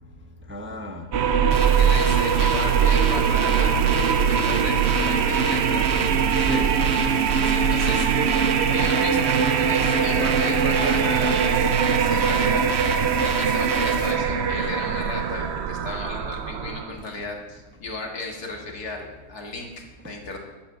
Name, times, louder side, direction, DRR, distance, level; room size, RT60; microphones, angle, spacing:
voice 1, 0.5-1.1 6.3-6.8 7.5-7.6 14.5-14.6, equal, 10° right, 3 dB, 0.7 m, -37 dB
sound 1, 1.1-17.0, right 6 dB, 55° right, 0.8 m, -21 dB
sound 2, 1.5-14.1, right 3 dB, 70° right, 1.9 m, -33 dB
voice 2, 1.6-3.9 4.3-5.9 7.5-12.7 13.2-20.4, left 2 dB, 75° left, 1 dB, 2.4 m, -35 dB
11.0 x 8.6 x 7.0 m, 1.2 s
omnidirectional pair, 1.7 m